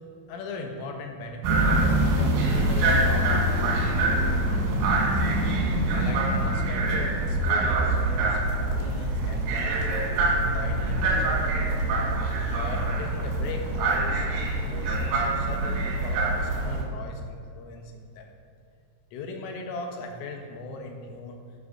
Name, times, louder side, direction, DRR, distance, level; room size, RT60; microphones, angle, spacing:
voice 1, 0.3-5.2 5.9-11.5 12.5-16.2 16.5-18.3 19.1-21.4, left 3 dB, 75° left, 3 dB, 3.8 m, -39 dB
sound 1, 1.4-16.8, right 2 dB, 75° right, 4.4 m, -24 dB
10.5 x 9.9 x 6.6 m, 2.4 s
omnidirectional pair, 6.0 m